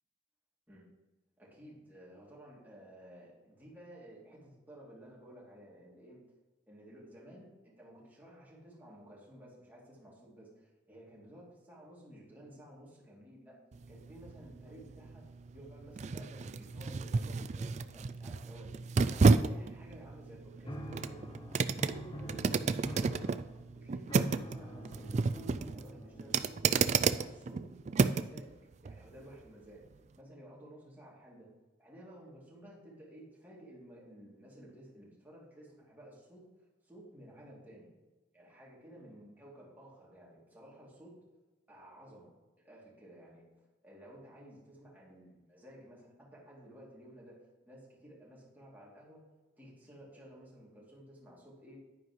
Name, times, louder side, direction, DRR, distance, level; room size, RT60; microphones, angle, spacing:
voice 1, 1.4-6.2 6.7-13.6 13.9-15.2 15.5-18.8 19.1-21.2 21.6-23.4 23.7-27.7 28.1-28.6 28.8-29.8 30.2-31.5 31.8-36.4 36.8-37.9 38.3-41.2 41.7-42.3 42.6-47.3 47.7-49.2 49.6-51.8, right 1 dB, 10° right, -6 dB, 2.9 m, -54 dB
sound 1, 13.7-28.4 28.8-29.0, right 4 dB, 40° right, 0.3 m, -31 dB
sound 2, 20.6-27.1, equal, 25° left, 0.7 m, -46 dB
10.0 x 9.7 x 3.2 m, 1.2 s
head